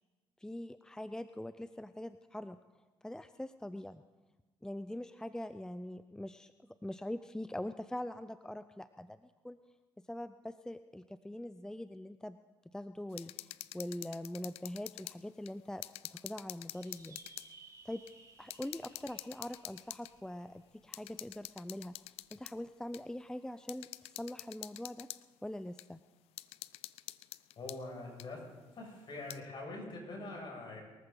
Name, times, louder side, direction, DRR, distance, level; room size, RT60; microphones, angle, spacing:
voice 1, 0.4-2.6 3.0-4.0 4.6-9.6 10.0-12.4 12.7-17.6 17.8-18.0 18.4-22.0 22.3-23.9 24.2-25.1 25.4-26.0, left 1 dB, 5° left, 12 dB, 0.5 m, -43 dB
sound 1, 13.1-15.2 15.5-17.5 18.1-18.2 18.5-20.1 20.9-22.6 22.9-23.0 23.7-25.2 25.8-25.9 26.4-27.8 28.2-28.3 29.1-29.4, left 16 dB, 75° left, 0.4 m, -47 dB
sound 2, 16.7-21.5, right 3 dB, 35° right, 5.2 m, -59 dB
voice 2, 27.6-28.4 28.7-30.8, left 2 dB, 50° left, 0 dB, 6.6 m, -44 dB
23.0 x 14.5 x 3.9 m, 1.2 s
supercardioid pair, 70°, 10 cm